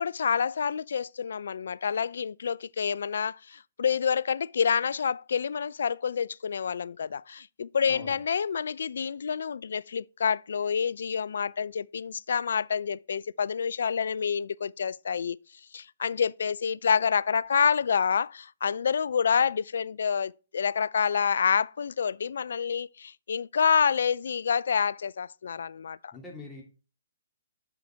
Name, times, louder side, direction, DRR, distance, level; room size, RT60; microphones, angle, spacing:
voice 1, 0.0-15.4 15.7-26.1, left 6 dB, 70° left, 0.3 m, -28 dB
voice 2, 26.1-26.6, left 2 dB, 10° left, 2.7 m, -43 dB
8.2 x 6.3 x 3.4 m
hypercardioid pair, 130°, 0 cm